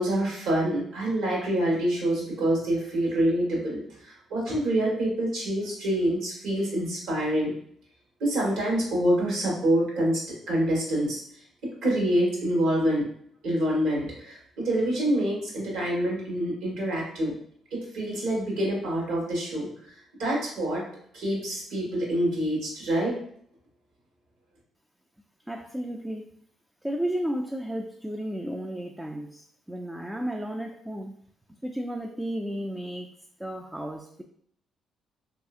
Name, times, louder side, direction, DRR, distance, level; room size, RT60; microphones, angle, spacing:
voice 1, 0.0-7.5 8.2-11.2 11.6-13.1 13.4-17.3 17.7-19.7 20.2-20.8 21.1-23.2, right 1 dB, 80° right, -4 dB, 1.3 m, -26 dB
voice 2, 25.5-26.3 26.8-31.2 31.6-33.1 33.4-34.2, right 1 dB, 10° right, 3 dB, 0.3 m, -33 dB
3.3 x 2.7 x 2.4 m, 0.64 s
supercardioid pair, 70°, 0 cm